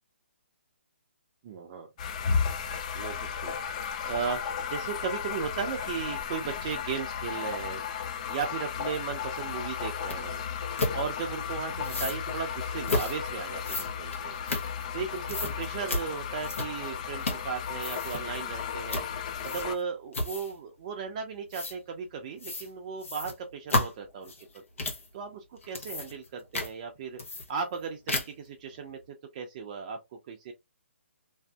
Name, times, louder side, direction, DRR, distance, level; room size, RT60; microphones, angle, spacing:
voice 1, 1.4-1.9 2.9-3.5 4.0-4.4 4.7-7.8 8.3-10.4 10.9-14.4 14.9-19.1 19.4-27.2 27.5-29.0 29.3-30.0 30.3-30.5, right 6 dB, 30° right, 0.5 m, -36 dB
sound 1, 2.0-19.7, left 7 dB, 30° left, 0.3 m, -34 dB
sound 2, 10.1-10.2 10.8-11.0 11.8-12.2 12.9-13.2 13.6-15.0 15.3-15.5 15.9-16.1 16.4-16.9 17.2-17.5 17.8-18.2 18.9-19.1 19.4-19.8 20.1-20.6 21.5-21.8 22.4-22.7 23.0-25.1 25.6-26.3 26.5-26.7 27.2-27.8 28.1-28.5, left 2 dB, 80° left, 1.0 m, -32 dB
2.6 x 2.5 x 2.2 m
hypercardioid pair, 155°, 7 cm